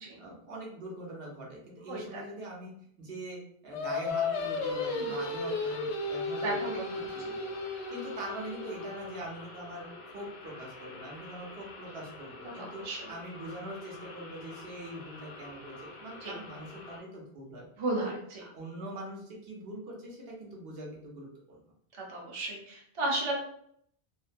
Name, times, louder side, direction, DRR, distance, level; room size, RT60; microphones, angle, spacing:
voice 1, 0.2-2.7 3.0-6.9 7.3-7.4 7.9-17.7 18.0-18.1 18.5-21.6, right 1 dB, 65° right, -2 dB, 0.9 m, -43 dB
voice 2, 1.9-2.2 4.9-5.2 6.4-7.3 12.6-13.1 16.2-16.3 17.8-18.4 22.1-23.4, right 2 dB, 35° right, -2 dB, 0.5 m, -34 dB
Singing, 3.7-9.1, left 3 dB, 85° left, 0.8 m, -34 dB
sound 1, 4.1-17.0, left 3 dB, 55° left, 0.6 m, -47 dB
2.5 x 2.1 x 2.5 m, 0.67 s
omnidirectional pair, 1.1 m